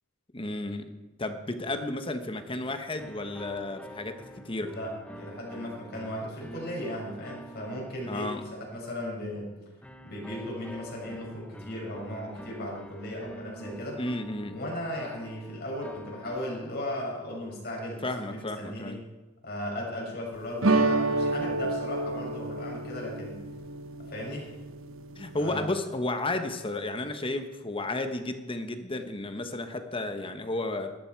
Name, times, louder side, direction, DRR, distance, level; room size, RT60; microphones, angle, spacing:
voice 1, 0.3-0.9 1.2-4.7 8.1-8.4 14.0-14.6 18.0-19.0 25.2-30.9, left 2 dB, 25° left, 8 dB, 1.2 m, -33 dB
sound 1, 3.0-8.8 9.8-17.2, right 1 dB, 5° left, 0.9 m, -47 dB
voice 2, 4.6-9.5 10.0-14.0 14.5-19.0 19.4-23.4 24.0-24.5 25.4-25.7, left 1 dB, 50° left, -2 dB, 6.2 m, -36 dB
sound 2, 20.6-25.5, right 2 dB, 65° right, 1.1 m, -29 dB
19.0 x 13.5 x 4.7 m, 1.2 s
head